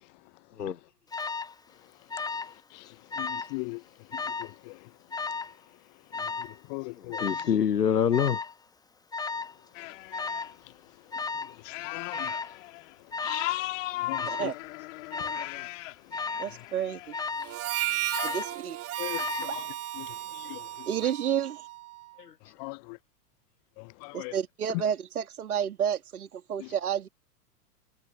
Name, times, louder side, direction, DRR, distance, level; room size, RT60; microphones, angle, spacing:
Alarm, 1.1-1.5 2.1-2.6 2.9-3.5 4.1-4.5 5.1-5.6 6.1-6.6 7.1-7.6 8.1-8.5 9.1-9.5 10.1-10.5 11.1-11.6 12.1-12.6 13.1-13.5 14.1-14.5 15.1-15.6 16.1-16.5 17.1-17.6 18.1-18.6 19.1-19.6, left 4 dB, 10° left, 1.2 m, -34 dB
voice 1, 3.2-3.8 4.4-4.7 6.7-7.2 11.8-12.3 14.0-14.5 19.0-19.6 20.0-20.1 20.4-20.6 22.6-22.8 24.0-24.3, left 34 dB, 30° left, 0.6 m, -38 dB
voice 2, 7.0-8.4 15.1-15.3 22.2-22.5, left 8 dB, 80° left, 0.8 m, -26 dB
sound 1, 9.7-10.5 11.7-12.9 13.2-17.3, left 18 dB, 50° left, 4.1 m, -37 dB
voice 3, 16.4-17.1 18.2-18.8 19.5-19.6 20.9-21.6 24.1-27.1, right 9 dB, 65° right, 2.9 m, -30 dB
Harmonica, 17.4-22.0, right 14 dB, 30° right, 3.5 m, -34 dB
figure-of-eight pair, 100°, 47 cm